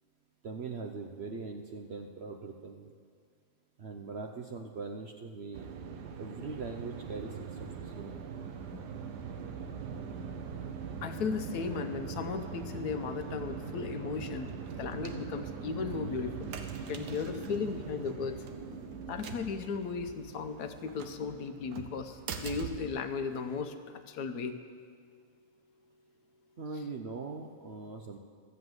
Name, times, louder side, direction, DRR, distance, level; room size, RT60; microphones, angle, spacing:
voice 1, 0.4-2.9 3.8-5.7 6.2-8.2 26.6-28.2, right 4 dB, 55° right, 3 dB, 0.7 m, -41 dB
sound 1, 5.5-23.6, right 6 dB, 80° right, 1.4 m, -42 dB
voice 2, 11.0-14.5 14.8-16.5 16.9-18.5 19.1-24.6, left 5 dB, 75° left, 8 dB, 1.3 m, -36 dB
13.0 x 7.9 x 7.9 m, 2.1 s
omnidirectional pair, 1.8 m